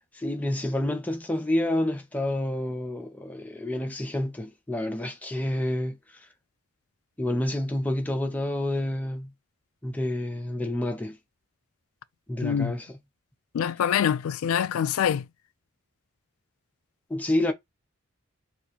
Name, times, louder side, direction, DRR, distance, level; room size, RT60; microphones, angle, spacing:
voice 1, 0.1-6.3 7.2-9.3 9.8-11.2 12.3-13.0 17.1-17.5, left 1 dB, 5° left, 0.4 m, -29 dB
voice 2, 12.4-12.7 13.5-15.3, left 8 dB, 80° left, 0.3 m, -25 dB
2.8 x 2.5 x 3.9 m
head